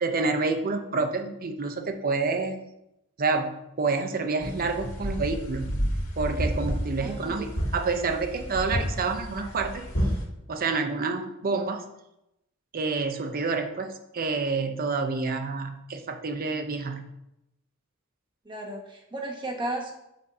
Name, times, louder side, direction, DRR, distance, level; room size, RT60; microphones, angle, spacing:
voice 1, 0.0-2.6 3.2-5.8 6.2-9.9 10.5-11.9 12.7-17.0, right 4 dB, 45° right, 6 dB, 0.6 m, -28 dB
sound 1, 4.4-10.2, equal, 80° left, 1.9 m, -30 dB
voice 2, 7.0-7.5 18.4-19.9, right 1 dB, 20° right, 0 dB, 1.2 m, -34 dB
7.8 x 2.7 x 5.3 m, 0.85 s
head